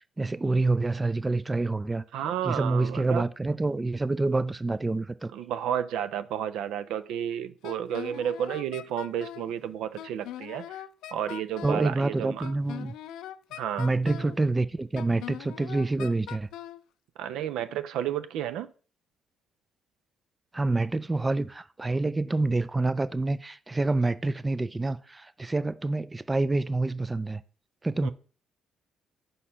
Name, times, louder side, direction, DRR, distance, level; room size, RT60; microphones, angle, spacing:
voice 1, 0.2-2.0 2.4-5.3 11.6-12.9 13.8-16.5 20.5-27.4 27.8-28.1, right 2 dB, 20° right, 0.3 m, -27 dB
voice 2, 2.1-3.2 5.3-10.8 11.1-12.5 13.6-13.9 17.2-18.7 28.0-28.1, right 10 dB, 90° right, 0.4 m, -31 dB
Wind instrument woodwind instrument, 7.6-9.5 10.0-11.9 12.4-14.4 15.0-16.8, left 12 dB, 90° left, 0.3 m, -41 dB
5.0 x 4.3 x 5.5 m
cardioid pair, 90°, 0 cm